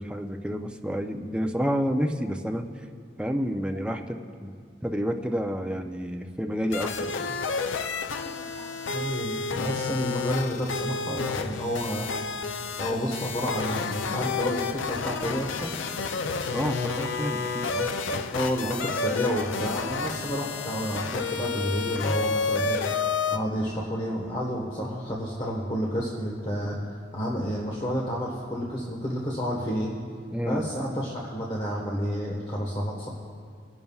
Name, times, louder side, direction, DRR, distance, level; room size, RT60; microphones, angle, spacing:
voice 1, 0.0-2.7 3.2-4.5 4.8-7.3 16.5-18.2 30.3-30.7, equal, 5° right, 4 dB, 0.5 m, -30 dB
sound 1, 6.7-23.4, left 4 dB, 90° left, 0.5 m, -30 dB
voice 2, 8.2-12.1 12.8-15.8 18.3-26.8 27.1-29.9 30.5-33.1, equal, 30° left, -3 dB, 1.3 m, -30 dB
24.5 x 11.0 x 2.4 m, 2.2 s
head